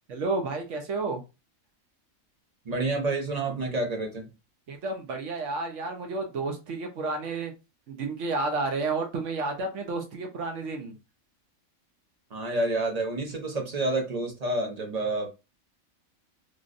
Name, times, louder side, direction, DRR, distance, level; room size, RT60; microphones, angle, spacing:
voice 1, 0.1-1.2 4.7-7.5 7.9-10.9, right 3 dB, 65° right, 1.1 m, -31 dB
voice 2, 2.6-4.3 12.3-15.3, right 2 dB, 35° right, 0.7 m, -29 dB
3.3 x 2.5 x 2.5 m
omnidirectional pair, 1.5 m